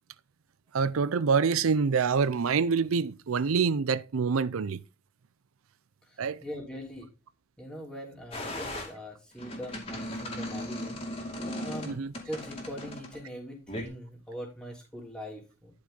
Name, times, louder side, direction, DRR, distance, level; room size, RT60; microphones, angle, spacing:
voice 1, 0.7-4.8 6.2-6.4 11.9-12.1, right 5 dB, 85° right, 0.5 m, -26 dB
voice 2, 6.1-7.1 7.6-11.0 11.6-11.9 12.2-15.7, equal, 5° left, 3.2 m, -42 dB
sound 1, 8.3-8.9 9.4-13.2 13.7-13.8, left 1 dB, 30° left, 2.4 m, -37 dB
11.5 x 5.4 x 3.9 m
head